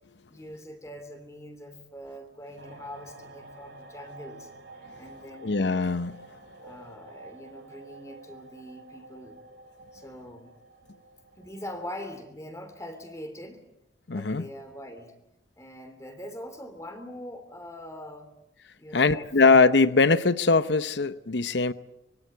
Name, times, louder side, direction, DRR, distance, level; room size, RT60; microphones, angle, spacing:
voice 1, 0.3-4.5 5.0-5.8 6.6-9.4 9.9-10.6 11.4-13.7 14.1-15.1 15.6-18.3 18.8-19.3, left 1 dB, 15° left, 3.1 m, -43 dB
sound 1, 2.6-11.8, right 2 dB, 65° right, 4.2 m, -49 dB
voice 2, 5.4-6.2 14.1-14.5 18.9-21.7, left 4 dB, 70° left, 0.8 m, -21 dB
24.5 x 22.0 x 7.8 m
head